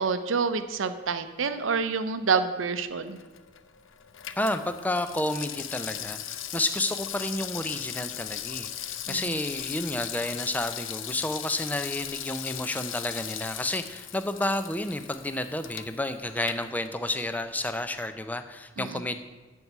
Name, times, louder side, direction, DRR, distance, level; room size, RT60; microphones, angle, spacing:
voice 1, 0.0-3.2 9.1-9.3 18.8-19.0, right 5 dB, 80° right, 9 dB, 0.6 m, -28 dB
Water tap faucet / Sink (filling or washing), 3.0-17.3 17.6-17.7, left 11 dB, 80° left, 0.6 m, -38 dB
voice 2, 4.4-19.2, left 1 dB, 10° left, 9 dB, 0.5 m, -31 dB
13.0 x 4.7 x 8.1 m, 1.2 s
head